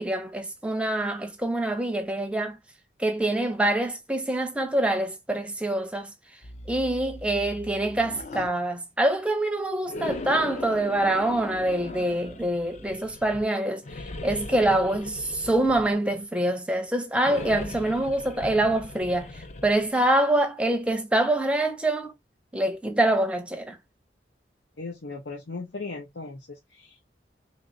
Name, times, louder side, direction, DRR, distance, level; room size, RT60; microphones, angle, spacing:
voice 1, 0.0-2.6 3.0-6.1 6.7-13.8 14.2-19.3 19.6-22.1 22.5-23.8, right 1 dB, 5° right, 0.5 m, -25 dB
sound 1, 6.4-8.5 9.8-13.4 13.8-16.2 17.2-19.9, left 2 dB, 40° left, 0.4 m, -39 dB
voice 2, 24.8-27.1, left 3 dB, 85° left, 0.8 m, -38 dB
3.3 x 3.0 x 2.5 m
head